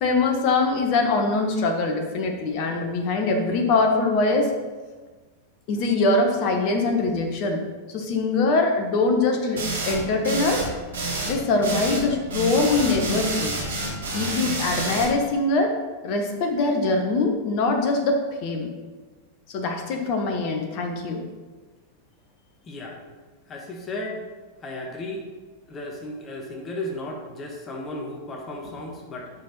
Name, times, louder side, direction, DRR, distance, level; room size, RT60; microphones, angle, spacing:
voice 1, 0.0-4.5 5.7-7.6 7.9-10.7 11.2-13.5 14.1-15.7 16.0-18.7 19.5-21.2, left 3 dB, 45° left, 3 dB, 1.2 m, -23 dB
sound 1, 9.6-10.0 10.2-10.7 10.9-11.4 11.6-12.0 12.3-15.0, right 2 dB, 60° right, 2.5 m, -28 dB
voice 2, 22.6-23.0 23.5-24.2 24.6-25.2 25.7-29.3, left 1 dB, 25° left, 1 dB, 1.3 m, -34 dB
9.5 x 5.6 x 4.2 m, 1.4 s
figure-of-eight pair, 90°, 0 cm